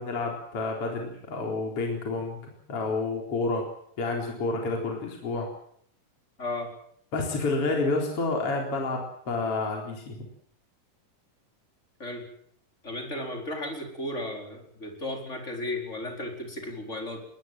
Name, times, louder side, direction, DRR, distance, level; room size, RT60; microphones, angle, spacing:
voice 1, 0.0-2.4 2.7-3.7 4.0-5.5 7.1-10.2, left 3 dB, 40° left, 0 dB, 4.8 m, -29 dB
voice 2, 6.4-6.7 12.0-12.3 12.8-17.2, left 1 dB, 20° left, 2 dB, 4.9 m, -34 dB
22.0 x 20.5 x 7.8 m, 0.65 s
omnidirectional pair, 3.9 m